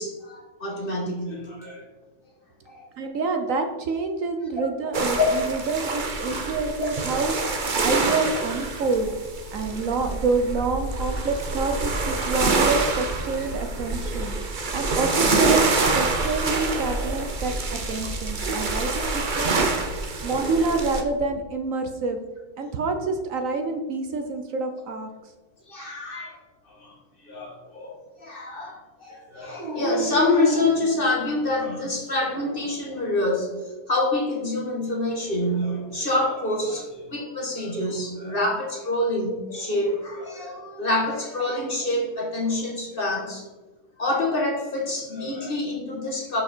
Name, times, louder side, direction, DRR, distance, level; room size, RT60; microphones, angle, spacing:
voice 1, 0.0-1.8 2.7-2.9 5.2-5.4 9.6-9.7 13.4-13.5 20.2-20.4 25.7-26.4 26.7-26.9 27.2-33.5 33.9-43.4 44.0-46.4, left 2 dB, 35° left, 0 dB, 1.9 m, -26 dB
voice 2, 3.0-9.1 9.5-14.3 14.7-15.7 15.9-19.7 20.2-22.2 22.6-25.3, right 3 dB, 60° right, 6 dB, 1.2 m, -27 dB
sound 1, 4.9-21.0, right 3 dB, 35° right, 1.0 m, -26 dB
Dog, 29.6-31.5 32.1-32.9 35.2-36.0, right 1 dB, 75° left, 3.9 m, -32 dB
11.5 x 6.1 x 4.5 m, 1.2 s
omnidirectional pair, 1.6 m